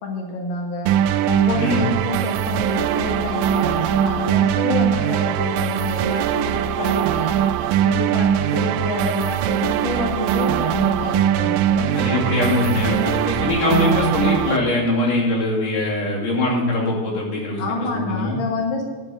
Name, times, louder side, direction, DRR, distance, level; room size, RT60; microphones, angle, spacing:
voice 1, 0.0-0.9 1.3-7.4 7.8-11.9 17.6-18.8, left 2 dB, 50° left, 0 dB, 1.7 m, -27 dB
sound 1, 0.9-14.6, right 11 dB, 90° right, 2.3 m, -21 dB
voice 2, 11.9-17.6 17.9-18.4, left 2 dB, 70° left, -4 dB, 4.2 m, -22 dB
11.5 x 5.5 x 8.1 m, 1.4 s
omnidirectional pair, 3.9 m